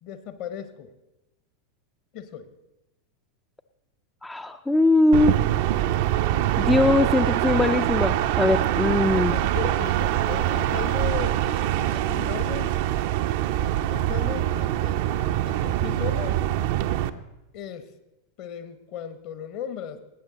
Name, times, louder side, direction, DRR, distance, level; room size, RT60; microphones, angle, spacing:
voice 1, 0.0-0.9 2.1-2.5 8.7-12.8 13.9-15.0 15.4-16.4 17.5-17.9 18.4-20.0, left 8 dB, 45° left, 11 dB, 1.0 m, -36 dB
voice 2, 4.2-5.3 6.6-9.4, left 2 dB, 10° left, 8 dB, 0.4 m, -21 dB
sound 1, 5.1-17.1, right 13 dB, 50° right, 0.5 m, -24 dB
18.5 x 8.6 x 3.9 m, 0.97 s
figure-of-eight pair, 90°, 0 cm